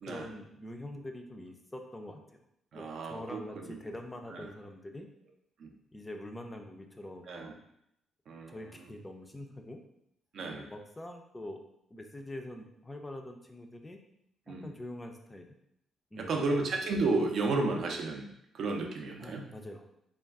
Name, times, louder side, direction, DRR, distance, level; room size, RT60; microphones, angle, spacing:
voice 1, 0.0-2.4 2.7-5.1 5.9-7.6 8.5-9.8 10.6-11.6 11.9-14.0 14.5-15.5 16.1-16.5 19.2-19.9, left 1 dB, 15° left, 4 dB, 0.3 m, -44 dB
voice 2, 2.7-3.8 4.3-4.5 5.6-5.7 7.3-7.5 8.3-8.9 10.3-10.7 14.5-14.7 16.2-19.4, right 3 dB, 65° right, 2 dB, 0.5 m, -33 dB
2.3 x 2.3 x 3.4 m, 0.77 s
cardioid pair, 90°, 0 cm